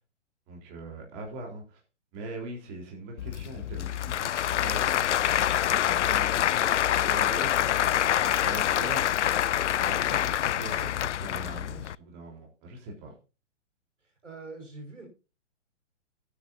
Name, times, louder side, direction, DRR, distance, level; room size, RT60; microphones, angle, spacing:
voice 1, 0.5-1.8 2.1-5.1 5.7-6.7 7.0-13.1, right 2 dB, 35° right, 1 dB, 4.0 m, -41 dB
Applause / Crowd, 3.2-11.9, left 11 dB, 75° left, 0.5 m, -26 dB
voice 2, 14.0-15.1, right 3 dB, 90° right, 3 dB, 5.7 m, -44 dB
18.0 x 9.4 x 2.7 m, 0.31 s
hypercardioid pair, 130°, 36 cm